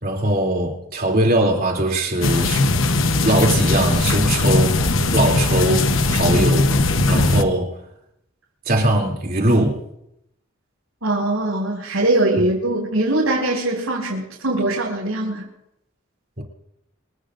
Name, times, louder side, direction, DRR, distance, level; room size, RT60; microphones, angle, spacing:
voice 1, 0.0-2.6 3.2-4.8 5.1-6.8 7.0-7.7 8.7-9.8 16.4-16.5, right 1 dB, 45° right, 3.1 m, -20 dB
sound 1, 2.2-7.4, left 2 dB, 70° left, 1.1 m, -19 dB
voice 2, 11.0-15.5, right 2 dB, 90° right, 6.9 m, -21 dB
28.5 x 18.0 x 2.6 m
head